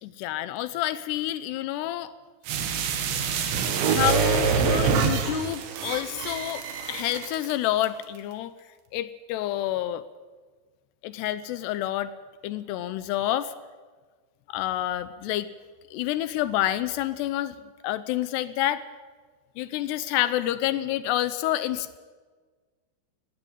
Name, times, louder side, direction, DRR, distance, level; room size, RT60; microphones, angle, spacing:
voice 1, 0.0-2.1 3.9-6.6 6.9-8.5 8.9-10.0 11.0-12.1 12.4-13.5 14.5-15.5 15.9-17.6 17.8-18.8 19.6-22.0, left 13 dB, 80° left, 14 dB, 2.7 m, -28 dB
sound 1, 2.5-7.5 7.8-7.9, right 6 dB, 90° right, 4.2 m, -25 dB
20.0 x 15.0 x 8.9 m, 1.4 s
omnidirectional pair, 5.0 m